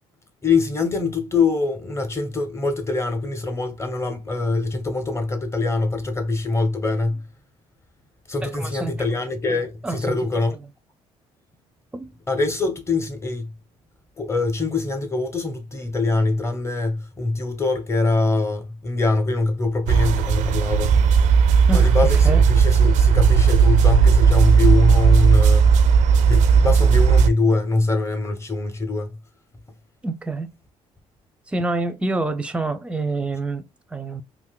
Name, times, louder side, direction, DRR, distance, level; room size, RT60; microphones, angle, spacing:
voice 1, 0.4-7.2 8.3-10.6 12.3-13.5 14.2-21.0 21.7-25.7 26.3-29.2, left 3 dB, 20° left, 0.9 m, -23 dB
voice 2, 8.4-9.0 9.8-10.2 11.9-12.1 21.7-21.9 22.2-22.4 30.0-30.5 31.5-33.6 33.9-34.2, right 2 dB, 10° right, 0.5 m, -27 dB
sound 1, 19.9-27.3, right 6 dB, 75° right, 0.4 m, -15 dB
3.6 x 2.6 x 2.3 m
supercardioid pair, 80°, 13 cm